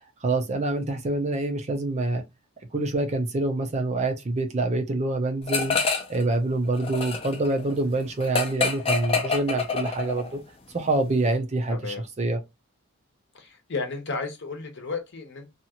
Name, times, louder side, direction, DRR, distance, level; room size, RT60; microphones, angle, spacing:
voice 1, 0.2-2.2 2.7-5.8 6.1-10.4 10.7-12.4, right 2 dB, 30° right, 0.4 m, -26 dB
sound 1, 5.5-6.2 6.5-10.3, left 4 dB, 25° left, 0.5 m, -27 dB
voice 2, 11.7-12.0 13.3-15.5, left 4 dB, 50° left, 0.8 m, -33 dB
2.8 x 2.4 x 2.8 m
head